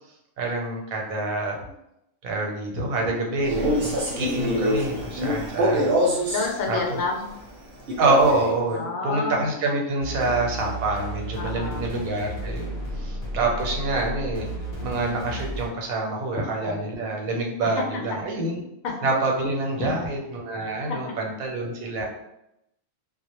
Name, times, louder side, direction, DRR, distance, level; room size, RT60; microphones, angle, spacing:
voice 1, 0.4-1.6 2.2-5.9 6.7-7.0 8.0-14.5 14.8-18.6 19.0-22.0, right 2 dB, 85° right, 0 dB, 1.1 m, -26 dB
Male speech man speaking, 3.4-6.5 7.9-8.5, equal, 55° right, 0.8 m, -24 dB
voice 2, 6.3-7.3 8.7-9.4 11.4-11.8 12.7-13.1 16.6-16.9 18.8-18.9 19.8-19.9 22.0-22.1, left 3 dB, 80° left, 0 dB, 1.0 m, -30 dB
sound 1, 10.0-15.7, equal, 50° left, 0.7 m, -33 dB
2.3 x 2.1 x 2.8 m, 0.83 s
omnidirectional pair, 1.4 m